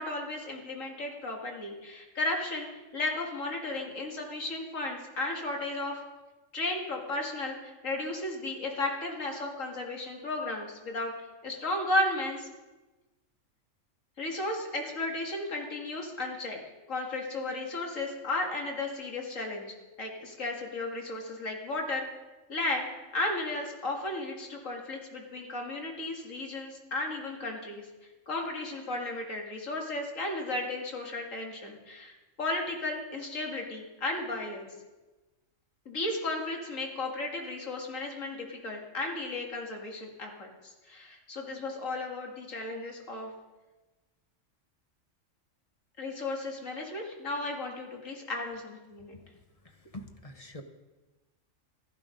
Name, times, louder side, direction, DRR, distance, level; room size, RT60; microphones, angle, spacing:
voice 1, 0.0-2.7 2.9-6.0 6.5-11.1 11.4-12.5 14.2-16.6 16.9-22.0 22.5-22.9 23.1-27.9 28.3-34.7 35.9-43.3 46.0-49.1, left 2 dB, 75° left, 1 dB, 2.5 m, -34 dB
voice 2, 49.9-50.6, left 1 dB, 30° left, 6 dB, 1.0 m, -43 dB
14.5 x 11.5 x 5.2 m, 1.1 s
omnidirectional pair, 1.3 m